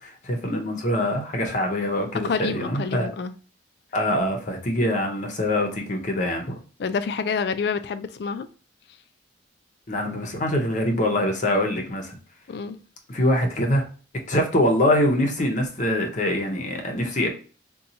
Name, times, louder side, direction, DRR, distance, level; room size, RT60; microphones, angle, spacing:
voice 1, 0.0-3.1 3.9-6.6 9.9-12.2 13.1-13.8 14.3-17.3, left 1 dB, 40° left, 0.7 m, -24 dB
voice 2, 2.2-3.3 6.8-8.5 12.5-12.8, left 5 dB, 60° left, 0.4 m, -28 dB
4.1 x 2.3 x 2.7 m
head